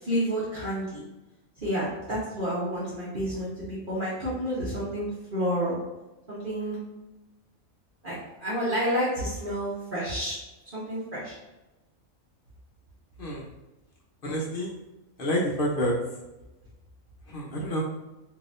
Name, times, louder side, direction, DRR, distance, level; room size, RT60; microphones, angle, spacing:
voice 1, 0.0-1.0 1.6-5.8 6.3-6.8 8.0-10.4 10.7-11.4, equal, 40° right, -9 dB, 1.0 m, -30 dB
voice 2, 14.2-14.7 15.2-15.9 17.3-17.8, equal, 50° left, -3 dB, 0.9 m, -28 dB
3.8 x 2.8 x 2.5 m, 1.0 s
omnidirectional pair, 1.4 m